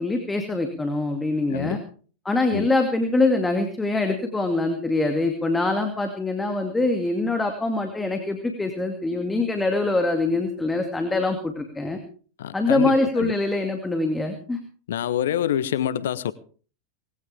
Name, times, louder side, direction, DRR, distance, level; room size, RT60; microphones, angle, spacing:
voice 1, 0.0-1.8 2.2-12.0 12.5-14.6, left 2 dB, 10° left, 2.3 m, -24 dB
voice 2, 1.5-1.8 2.5-2.7 12.4-13.3 14.9-16.3, left 10 dB, 65° left, 0.8 m, -26 dB
20.0 x 16.5 x 3.5 m
figure-of-eight pair, 90°, 0 cm